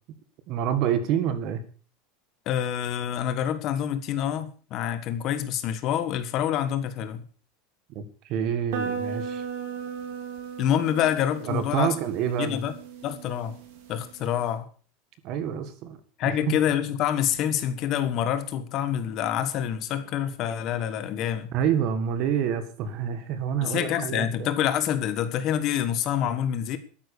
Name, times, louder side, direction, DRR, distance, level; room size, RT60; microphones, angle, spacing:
voice 1, 0.5-1.6 7.9-9.4 11.4-12.7 15.2-16.0 16.2-16.6 21.5-24.5, right 8 dB, 40° right, 11 dB, 1.7 m, -27 dB
voice 2, 2.4-7.2 10.6-11.9 12.4-12.7 13.0-13.6 13.9-14.7 16.2-21.5 23.6-26.8, left 10 dB, 35° left, 11 dB, 1.4 m, -27 dB
sound 1, 8.7-14.5, right 7 dB, 70° right, 3.7 m, -37 dB
13.0 x 9.6 x 6.7 m, 0.41 s
supercardioid pair, 175°, 0 cm